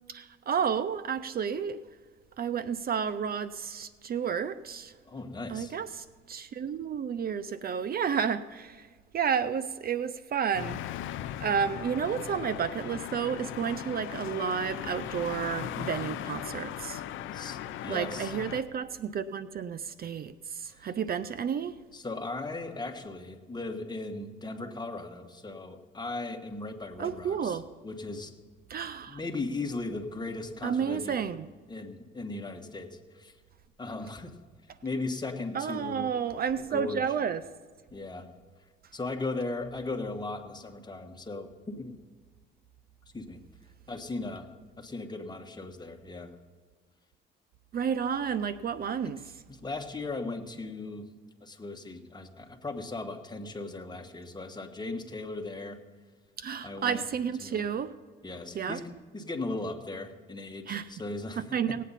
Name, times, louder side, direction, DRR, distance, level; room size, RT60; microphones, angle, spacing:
voice 1, 0.1-1.8 2.4-4.9 5.5-8.9 9.1-10.8 11.4-17.0 17.9-21.7 27.0-27.7 28.7-29.2 30.6-31.5 35.5-37.4 47.7-49.2 56.4-57.9 58.5-58.8 60.7-60.9 61.4-61.8, right 7 dB, 50° right, 14 dB, 0.6 m, -31 dB
voice 2, 5.0-5.8 17.3-18.4 20.7-20.9 21.9-27.6 27.8-28.4 29.1-31.3 31.7-33.4 33.8-34.4 34.8-36.1 36.7-37.1 37.9-38.4 38.9-42.0 43.1-43.4 43.9-46.3 49.0-49.1 49.5-55.8 56.6-57.0 57.4-57.7 58.2-61.8, left 3 dB, 20° left, 5 dB, 1.3 m, -37 dB
sound 1, 10.5-18.6, left 11 dB, 80° left, 0.5 m, -38 dB
18.5 x 8.4 x 4.1 m, 1.5 s
cardioid pair, 90°, 20 cm